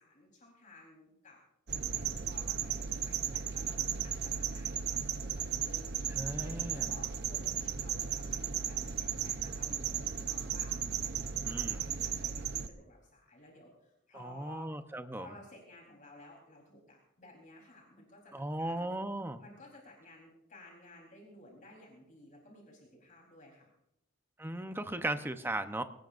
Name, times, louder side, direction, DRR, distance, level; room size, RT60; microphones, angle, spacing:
voice 1, 0.0-1.4 1.7-14.7 15.1-18.9 19.4-23.7, left 2 dB, 45° left, -1 dB, 3.9 m, -55 dB
sound 1, 1.7-12.7, right 8 dB, 55° right, 0.8 m, -35 dB
voice 2, 6.1-6.9 11.4-11.9 14.1-15.3 18.3-19.4 24.4-25.8, right 1 dB, 10° right, 8 dB, 0.8 m, -37 dB
23.5 x 18.5 x 2.6 m, 0.78 s
head